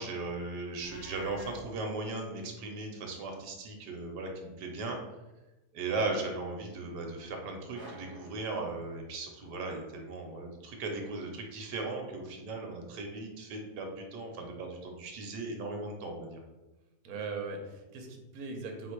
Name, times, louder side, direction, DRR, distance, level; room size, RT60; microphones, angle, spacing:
voice 1, 0.0-5.0 5.7-16.4, right 3 dB, 85° right, 2 dB, 1.3 m, -37 dB
Livestock farm animals working animals, 0.7-1.6, left 4 dB, 75° left, 1.1 m, -49 dB
sound 1, 7.7-9.5, right 1 dB, 40° right, 0.9 m, -51 dB
voice 2, 17.0-18.9, right 4 dB, 65° right, 2 dB, 1.1 m, -40 dB
4.0 x 2.5 x 4.4 m, 1.1 s
omnidirectional pair, 1.8 m